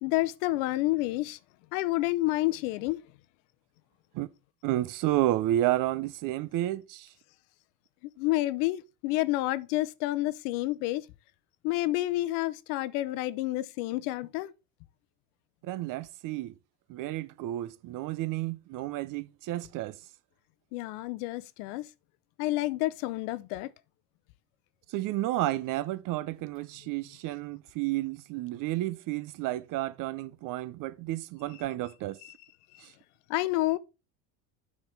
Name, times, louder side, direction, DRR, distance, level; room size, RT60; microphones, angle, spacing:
voice 1, 0.0-1.4 1.7-3.0 8.0-11.1 11.6-14.5 20.7-21.9 22.4-23.7 32.2-32.3 32.7-32.8 33.3-33.8, left 18 dB, 80° left, 0.8 m, -29 dB
voice 2, 4.6-7.1 15.6-16.5 16.9-20.0 24.9-32.2 32.8-32.9, right 15 dB, 45° right, 0.6 m, -31 dB
9.5 x 5.9 x 3.3 m
cardioid pair, 150°, 44 cm